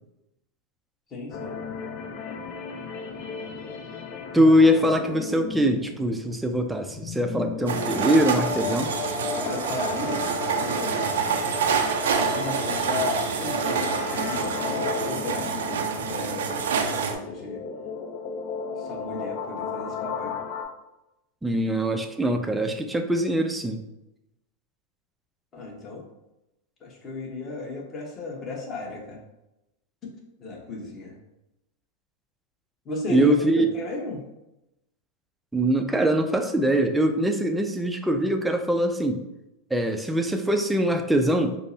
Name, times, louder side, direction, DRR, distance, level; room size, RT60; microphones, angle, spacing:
voice 1, 1.1-1.5 4.3-4.4 9.3-11.0 12.1-17.6 18.8-20.4 25.5-26.0 26.8-29.2 30.0-30.1 30.4-31.1 32.8-34.2, left 2 dB, 30° left, -2 dB, 1.1 m, -34 dB
sound 1, 1.3-20.6, left 5 dB, 50° left, 0.5 m, -35 dB
voice 2, 4.3-8.9 21.4-23.8 33.1-33.7 35.5-39.2 39.7-41.6, equal, 5° right, 5 dB, 0.4 m, -22 dB
sound 2, 7.7-17.1, right 6 dB, 85° right, 0.4 m, -27 dB
5.1 x 2.0 x 2.7 m, 0.92 s
hypercardioid pair, 115°, 0 cm